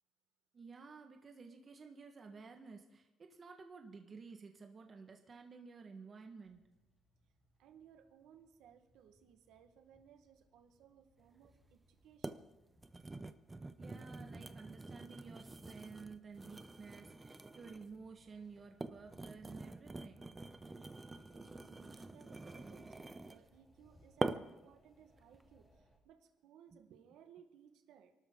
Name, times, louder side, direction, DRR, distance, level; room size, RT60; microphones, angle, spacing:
voice 1, 0.5-6.6 13.8-20.3, right 4 dB, 35° right, 4 dB, 1.5 m, -53 dB
sound 1, 6.4-26.0, left 1 dB, 15° left, 3.6 m, -70 dB
voice 2, 7.6-12.5 20.8-20.9 21.3-28.1, right 8 dB, 85° right, 7 dB, 1.5 m, -63 dB
sound 2, 11.4-11.5 12.2-12.4 12.8-18.0 18.6-23.5 24.2-24.7 25.2-25.4, right 2 dB, 15° right, 0.7 m, -45 dB
28.0 x 12.5 x 3.9 m, 0.97 s
cardioid pair, 140°, 0 cm